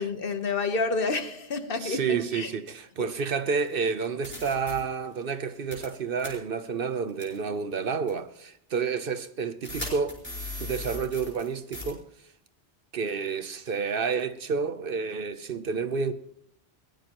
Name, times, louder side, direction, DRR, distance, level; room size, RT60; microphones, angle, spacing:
voice 1, 0.0-2.5 3.0-3.1, left 4 dB, 55° left, 1.3 m, -29 dB
voice 2, 1.8-10.2 10.6-12.0 12.9-16.1, right 5 dB, 60° right, 0.9 m, -30 dB
sound 1, 3.6-3.7 4.2-4.7 5.7-5.9 6.2-6.3 7.2-7.4 8.1-8.2 9.6-11.5 11.7-11.9, left 2 dB, 10° left, 4.6 m, -37 dB
21.5 x 18.0 x 3.0 m
omnidirectional pair, 1.1 m